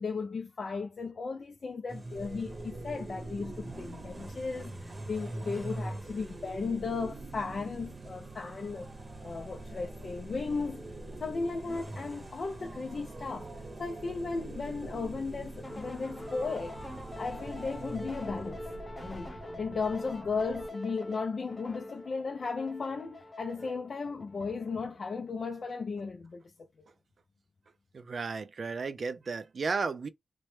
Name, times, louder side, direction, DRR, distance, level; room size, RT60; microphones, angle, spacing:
voice 1, 0.0-8.9 9.2-13.5 13.8-16.8 17.2-18.6 19.0-26.4, left 4 dB, 65° left, 0.4 m, -35 dB
sound 1, 1.9-18.7, right 2 dB, 35° right, 0.8 m, -45 dB
sound 2, 2.1-20.7, right 2 dB, 85° right, 0.8 m, -46 dB
sound 3, 15.6-25.0, left 1 dB, 30° left, 0.7 m, -45 dB
voice 2, 27.9-30.1, right 4 dB, 65° right, 0.4 m, -34 dB
3.0 x 2.1 x 3.1 m
cardioid pair, 60°, 0 cm